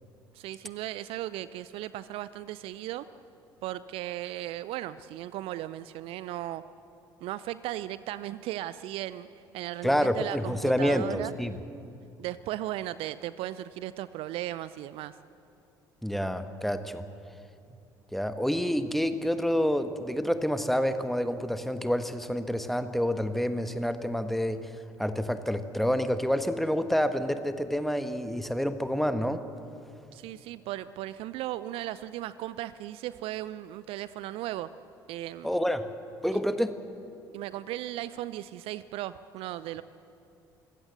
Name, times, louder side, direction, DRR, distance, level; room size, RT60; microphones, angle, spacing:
voice 1, 0.3-3.1 3.6-6.6 7.2-9.3 9.5-11.3 12.2-15.2 30.1-34.7 35.1-35.5 37.3-39.8, right 14 dB, 55° right, 16 dB, 0.5 m, -36 dB
voice 2, 9.8-11.5 16.0-17.1 18.1-24.7 25.0-29.4 35.4-35.9 36.2-36.7, equal, ahead, 10 dB, 1.3 m, -28 dB
25.0 x 16.0 x 8.0 m, 2.6 s
figure-of-eight pair, 55°, 12 cm